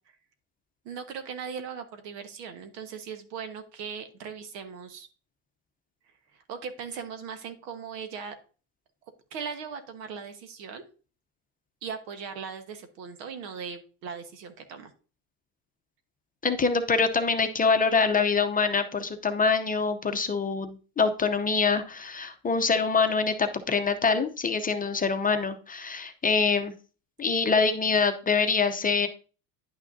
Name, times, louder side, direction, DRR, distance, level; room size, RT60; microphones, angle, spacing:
voice 1, 0.8-5.1 6.3-8.4 9.3-10.8 11.8-14.9, right 6 dB, 90° right, 7 dB, 1.4 m, -39 dB
voice 2, 16.4-26.7 27.2-29.1, left 4 dB, 20° left, 7 dB, 0.7 m, -25 dB
10.5 x 6.0 x 2.7 m, 0.36 s
supercardioid pair, 110°, 48 cm